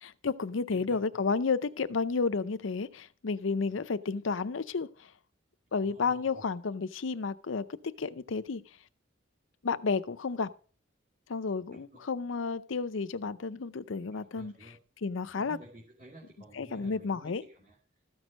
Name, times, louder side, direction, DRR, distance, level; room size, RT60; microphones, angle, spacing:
voice 1, 0.0-5.1 5.7-8.6 9.6-10.5 11.3-14.5 15.0-15.6 16.5-17.4, left 4 dB, 70° left, 0.6 m, -32 dB
voice 2, 5.7-6.4 11.7-12.0 14.1-14.8 15.3-17.8, right 1 dB, 40° right, 2.6 m, -52 dB
14.0 x 6.3 x 5.0 m
head